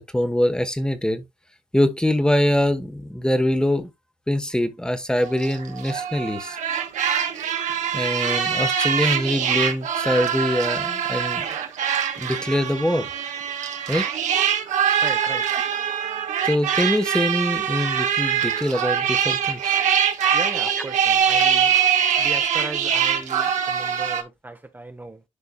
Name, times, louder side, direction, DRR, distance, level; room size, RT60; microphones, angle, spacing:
voice 1, 0.1-1.2 1.7-3.9 4.3-6.6 7.9-11.5 12.2-13.1 13.9-14.1 16.4-19.8, left 1 dB, 5° left, 1.2 m, -23 dB
sound 1, 5.2-24.2, right 8 dB, 80° right, 1.4 m, -23 dB
voice 2, 15.0-15.5 20.3-21.8 22.2-25.2, right 2 dB, 15° right, 1.0 m, -37 dB
11.0 x 4.4 x 2.3 m
cardioid pair, 85°, 12 cm